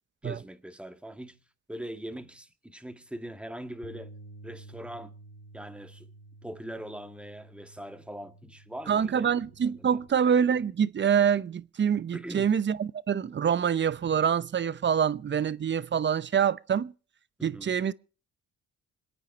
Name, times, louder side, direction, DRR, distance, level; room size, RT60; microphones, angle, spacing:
voice 1, 0.2-1.4 1.7-4.1 4.4-5.1 5.5-6.1 6.4-10.0 12.1-12.6 17.4-17.8, right 1 dB, 5° right, 1.8 m, -42 dB
Bass guitar, 3.8-10.1, right 2 dB, 45° left, 2.3 m, -51 dB
voice 2, 8.9-16.9 17.4-17.9, right 8 dB, 40° right, 0.8 m, -26 dB
27.0 x 9.1 x 4.2 m
cardioid pair, 90°, 30 cm